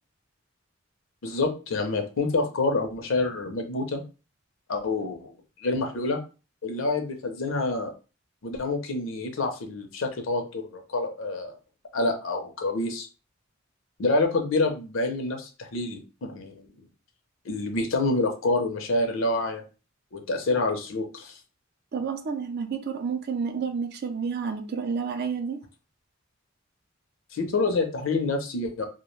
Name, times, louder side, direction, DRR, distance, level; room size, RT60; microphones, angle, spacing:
voice 1, 1.2-4.0 4.7-5.3 5.6-6.2 6.6-7.9 8.4-11.6 11.9-13.1 14.0-16.6 17.4-19.6 20.1-21.3 27.3-28.9, left 2 dB, 80° left, 0.6 m, -27 dB
voice 2, 21.9-25.6, right 6 dB, 55° right, 0.4 m, -30 dB
2.3 x 2.1 x 3.1 m
head